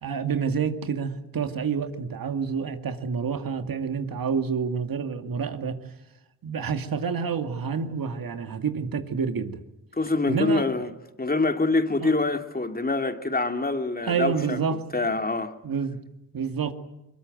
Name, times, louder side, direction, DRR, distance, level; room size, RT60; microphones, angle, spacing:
voice 1, 0.0-5.8 6.4-9.6 10.3-10.7 12.0-12.1 14.1-14.8 15.6-16.0 16.3-16.7, right 6 dB, 55° right, 2.3 m, -28 dB
voice 2, 9.9-10.9 11.2-14.6 14.9-15.5, left 3 dB, 20° left, 2.5 m, -25 dB
22.5 x 21.5 x 9.3 m
supercardioid pair, 55°, 41 cm